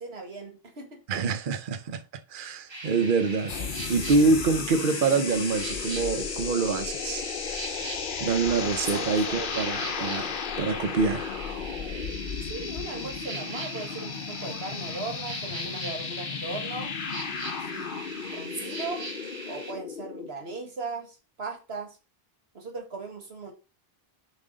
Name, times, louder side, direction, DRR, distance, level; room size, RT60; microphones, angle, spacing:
voice 1, 0.0-1.0 8.8-9.5 12.4-16.9 17.5-17.9 18.3-19.0 19.5-22.0 22.5-23.5, right 3 dB, 80° right, 2.0 m, -38 dB
voice 2, 1.1-2.0 2.3-3.5 3.9-7.2 8.2-11.2, right 4 dB, 60° right, 0.9 m, -25 dB
sound 1, 2.7-19.7, right 2 dB, 30° right, 1.1 m, -40 dB
sound 2, 3.5-20.3, left 6 dB, 60° left, 0.9 m, -34 dB
7.3 x 5.4 x 3.9 m
omnidirectional pair, 1.0 m